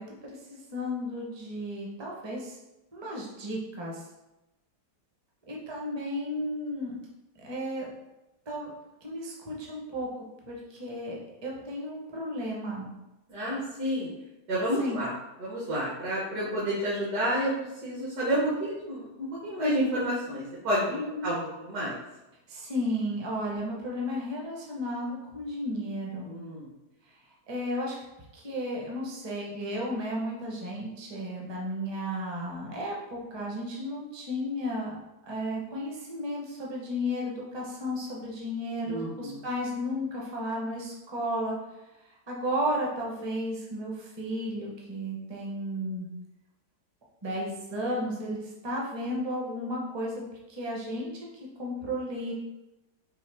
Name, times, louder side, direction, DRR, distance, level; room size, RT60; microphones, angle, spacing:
voice 1, 0.0-2.6 2.9-4.0 5.5-6.9 7.4-7.9 8.5-8.7 9.0-10.1 10.5-12.9 14.8-15.0 20.9-21.3 22.5-26.3 27.5-28.0 28.3-35.0 35.2-41.6 42.3-46.1 47.2-50.1 50.5-52.3, equal, 30° right, -2 dB, 0.5 m, -33 dB
voice 2, 13.3-14.1 14.5-15.1 15.4-20.9 21.2-22.0 26.2-26.7 38.9-39.4, equal, 70° right, -8 dB, 1.6 m, -30 dB
4.7 x 3.0 x 3.3 m, 0.98 s
omnidirectional pair, 1.8 m